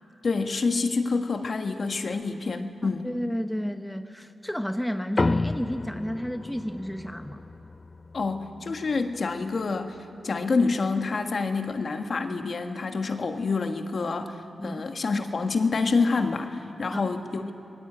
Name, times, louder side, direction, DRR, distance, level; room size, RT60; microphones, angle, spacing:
voice 1, 0.2-3.1 8.1-10.0 10.2-17.5, left 4 dB, 50° left, 6 dB, 1.6 m, -27 dB
voice 2, 2.8-7.4 14.6-14.8 16.9-17.0, equal, 5° left, 7 dB, 0.9 m, -31 dB
sound 1, 5.2-9.9, left 3 dB, 30° left, 0.5 m, -32 dB
26.0 x 21.0 x 8.8 m, 2.8 s
wide cardioid pair, 115°, 0 cm